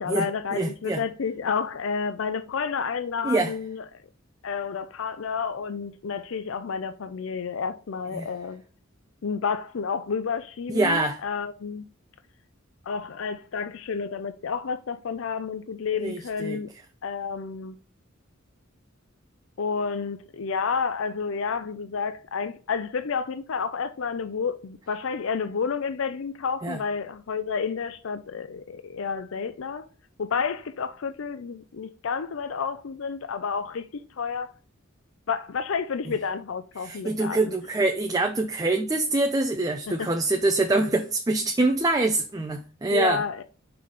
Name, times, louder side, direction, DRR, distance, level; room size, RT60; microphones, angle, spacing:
voice 1, 0.0-3.9 4.4-8.6 9.2-11.8 12.9-16.7 17.0-17.8 19.6-29.8 30.2-33.9 34.2-34.5 35.3-37.5 39.9-40.1 42.9-43.4, left 5 dB, 65° left, 0.5 m, -30 dB
voice 2, 0.5-1.0 3.2-3.5 8.1-8.3 10.7-11.2 16.0-16.6 26.6-26.8 36.8-43.2, right 2 dB, 15° right, 0.5 m, -25 dB
5.7 x 4.0 x 4.7 m
head